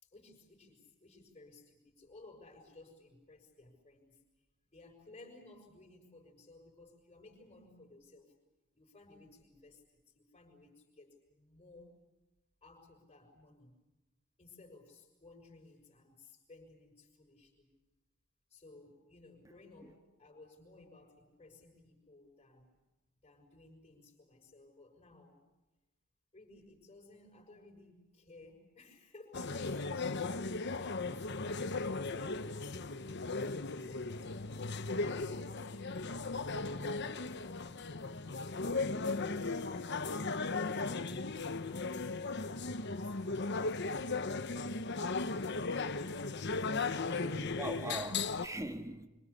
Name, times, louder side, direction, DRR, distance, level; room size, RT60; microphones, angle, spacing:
voice 1, 0.0-4.2 4.7-8.3 8.7-12.0 12.6-13.8 14.4-17.7 18.5-22.7 23.2-25.4 26.3-38.9 39.5-42.2 42.7-43.2 43.6-46.5, left 2 dB, 30° left, 6.4 m, -58 dB
sound 1, 29.3-48.5, left 3 dB, 55° left, 1.1 m, -37 dB
voice 2, 47.2-49.1, right 1 dB, 15° right, 1.6 m, -41 dB
27.0 x 25.5 x 8.5 m
head